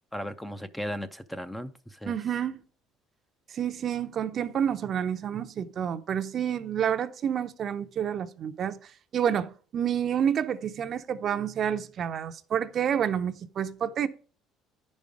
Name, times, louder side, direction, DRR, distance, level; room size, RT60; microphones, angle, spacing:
voice 1, 0.1-2.2, equal, 5° left, 0.5 m, -36 dB
voice 2, 2.1-2.6 3.5-8.8 9.1-14.1, right 8 dB, 40° right, 0.6 m, -29 dB
10.5 x 5.3 x 4.9 m
cardioid pair, 150°, 0 cm